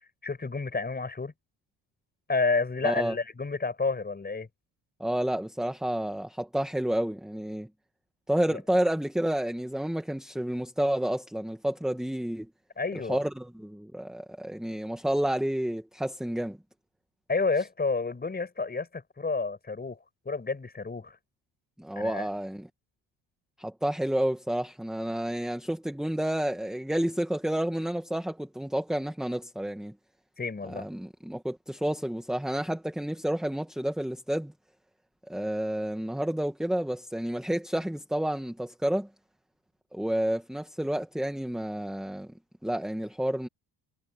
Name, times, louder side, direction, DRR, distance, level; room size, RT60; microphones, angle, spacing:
voice 1, 0.2-1.3 2.3-4.5 8.5-8.6 12.8-13.2 17.3-20.0 20.2-21.2 22.0-22.3 30.4-30.9, left 4 dB, 20° left, 6.3 m, -30 dB
voice 2, 2.8-3.1 5.0-7.7 8.3-12.5 12.9-16.6 21.8-22.7 23.6-29.9 30.6-34.5 35.3-39.1 39.9-42.3 42.6-43.5, right 1 dB, ahead, 1.5 m, -30 dB
cardioid pair, 130°, 45 cm